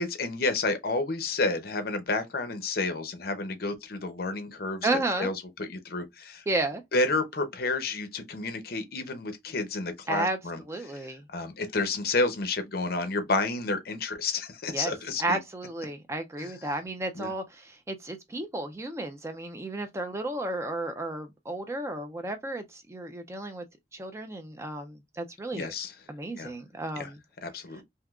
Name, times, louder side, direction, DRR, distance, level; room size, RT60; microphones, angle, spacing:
voice 1, 0.0-6.4 6.9-15.4 16.4-16.5 17.1-17.3 25.5-25.9 26.4-26.5 27.0-27.1 27.4-27.8, left 3 dB, 55° left, 0.7 m, -30 dB
voice 2, 4.8-5.3 6.5-6.8 10.1-10.4 10.7-11.2 14.7-14.9 15.2-23.6 23.9-25.7 26.1-27.2, right 2 dB, 15° right, 0.3 m, -32 dB
3.5 x 2.7 x 2.3 m
head